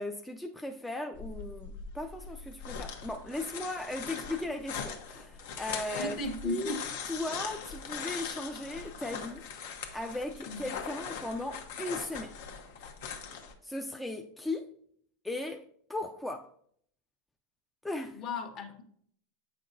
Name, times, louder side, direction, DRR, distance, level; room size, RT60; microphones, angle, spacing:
voice 1, 0.0-6.2 6.4-6.8 7.1-9.5 9.9-12.4 13.6-14.7 15.2-16.5 17.8-18.2, left 2 dB, 5° left, 0.4 m, -37 dB
sound 1, 1.1-13.5, left 6 dB, 70° left, 1.0 m, -41 dB
voice 2, 6.0-6.8 10.5-10.7 18.1-18.8, left 2 dB, 45° left, 1.2 m, -36 dB
8.3 x 5.7 x 2.6 m
supercardioid pair, 130°, 0 cm